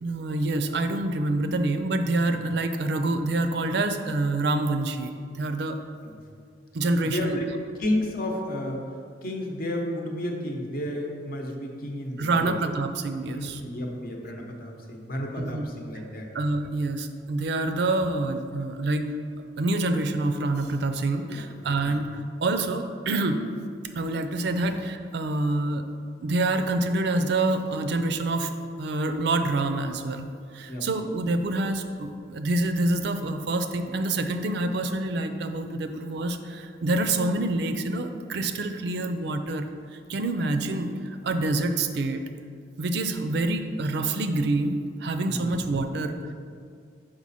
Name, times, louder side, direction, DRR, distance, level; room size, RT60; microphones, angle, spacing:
voice 1, 0.0-5.8 6.7-7.4 12.2-13.6 15.4-15.7 16.3-19.1 19.6-22.1 22.4-23.4 23.9-25.9 26.2-30.3 30.5-39.7 40.1-42.2 42.8-46.1, right 2 dB, 65° right, 7 dB, 0.4 m, -27 dB
voice 2, 7.0-7.5 7.8-8.9 9.2-12.6 13.2-16.3 21.3-21.4 21.8-22.0 24.6-24.7 30.7-30.9 45.3-45.6, left 1 dB, 55° left, 1 dB, 0.9 m, -32 dB
6.0 x 4.9 x 4.1 m, 2.2 s
head